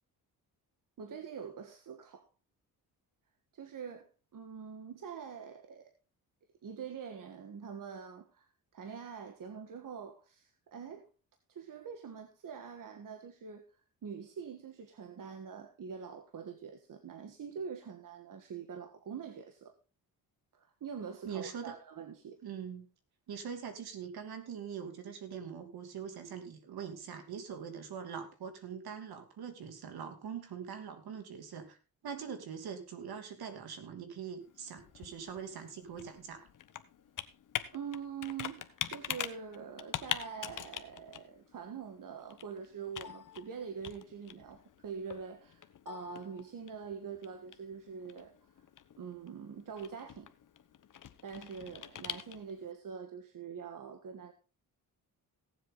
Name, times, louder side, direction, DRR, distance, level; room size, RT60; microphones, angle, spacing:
voice 1, 1.0-2.3 3.5-5.9 6.6-11.1 11.5-13.6 14.0-19.7 20.5-22.4 37.7-48.3 49.0-50.3 51.2-54.3, right 6 dB, 60° right, 6 dB, 1.5 m, -44 dB
voice 2, 21.2-21.7 22.4-22.9 23.3-31.8 32.0-36.5, right 7 dB, 75° right, 7 dB, 2.7 m, -43 dB
Computer keyboard, 34.4-52.7, left 9 dB, 55° left, 1.1 m, -44 dB
17.5 x 7.7 x 3.9 m, 0.34 s
cardioid pair, 90°, 38 cm